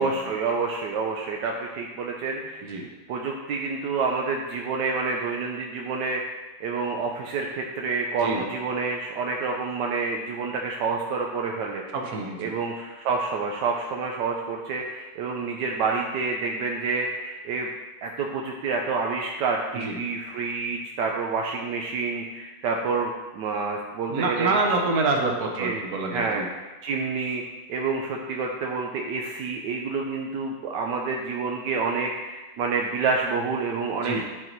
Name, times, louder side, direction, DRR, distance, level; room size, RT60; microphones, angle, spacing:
voice 1, 0.0-6.2 6.6-11.8 12.4-17.7 18.0-24.5 25.6-25.8 26.1-27.4 27.7-34.2, right 4 dB, 80° right, 1 dB, 1.3 m, -28 dB
voice 2, 11.9-12.5 19.8-20.0 24.1-26.5 34.0-34.2, right 3 dB, 60° right, 1 dB, 1.5 m, -26 dB
9.9 x 4.1 x 4.5 m, 1.2 s
omnidirectional pair, 1.9 m